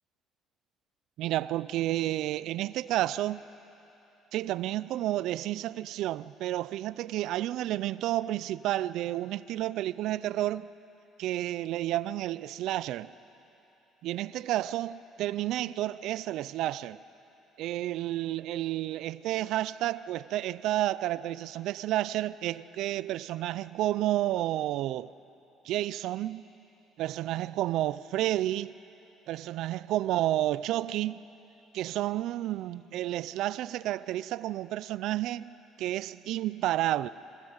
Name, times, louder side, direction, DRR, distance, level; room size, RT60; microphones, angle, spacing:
voice 1, 1.2-3.4 4.3-10.7 11.2-13.1 14.0-17.0 17.6-25.1 25.6-26.5 27.0-28.7 29.3-31.2 31.7-35.5 35.8-37.1, right 14 dB, 70° right, 0.4 m, -31 dB
23.5 x 17.0 x 8.0 m
cardioid pair, 135°, 0 cm